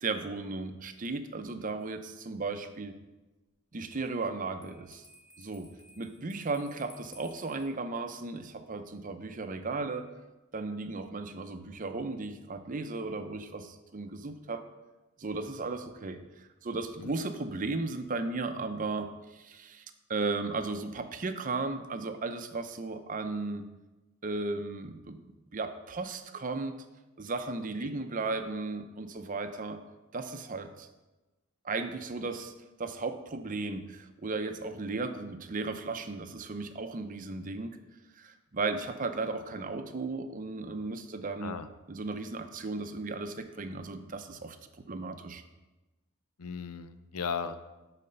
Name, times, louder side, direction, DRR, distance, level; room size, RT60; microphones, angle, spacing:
voice 1, 0.0-3.0 3.7-5.1 5.4-5.7 6.0-10.1 10.5-14.6 15.2-19.8 20.1-23.7 24.2-25.2 25.5-26.7 27.2-29.8 30.1-30.9 31.6-32.5 32.8-37.8 38.2-41.6 41.9-44.6 44.9-45.4, right 3 dB, 35° right, 8 dB, 0.6 m, -35 dB
Bell, 4.6-7.7, left 2 dB, 15° left, 1.2 m, -56 dB
voice 2, 46.4-47.7, left 6 dB, 85° left, 10 dB, 0.6 m, -36 dB
12.5 x 4.2 x 5.4 m, 1.1 s
head